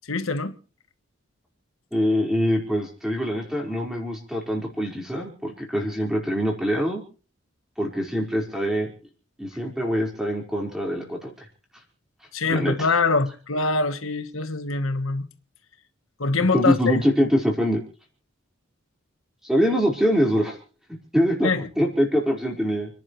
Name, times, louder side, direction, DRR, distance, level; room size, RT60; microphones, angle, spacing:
voice 1, 0.0-0.5 12.3-15.3 16.2-17.0 21.4-21.7, left 3 dB, 90° left, 1.4 m, -24 dB
voice 2, 1.9-7.0 7.8-8.9 9.4-11.3 12.5-12.7 16.5-17.8 19.4-20.6 21.1-22.9, equal, 5° right, 4.7 m, -24 dB
30.0 x 11.0 x 3.2 m
head